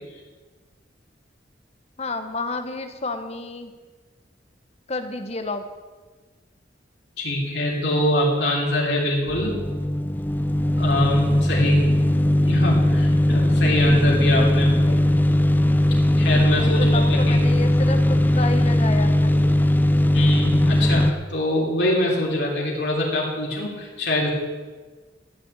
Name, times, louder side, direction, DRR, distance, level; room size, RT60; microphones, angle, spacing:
voice 1, 2.0-3.7 4.9-5.6 14.8-15.3 16.6-19.5, left 3 dB, 35° left, 7 dB, 1.1 m, -30 dB
voice 2, 7.2-9.6 10.8-11.9 12.4-14.8 16.2-17.4 20.1-24.3, left 1 dB, 70° left, -3 dB, 3.3 m, -23 dB
sound 1, 9.3-21.1, left 1 dB, 10° left, 0.6 m, -19 dB
13.5 x 6.9 x 8.7 m, 1.3 s
head